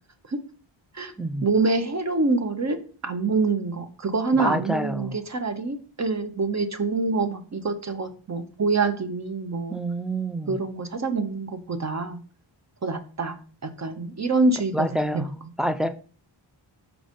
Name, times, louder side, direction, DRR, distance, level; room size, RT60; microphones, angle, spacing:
voice 1, 1.4-9.8 10.5-12.2 12.8-13.3 13.6-15.2, right 3 dB, 35° right, 0.8 m, -26 dB
voice 2, 4.4-5.1 9.7-10.6 14.7-15.3 15.6-15.9, equal, ahead, 0.3 m, -27 dB
4.7 x 3.9 x 5.1 m
wide cardioid pair, 145°, 47 cm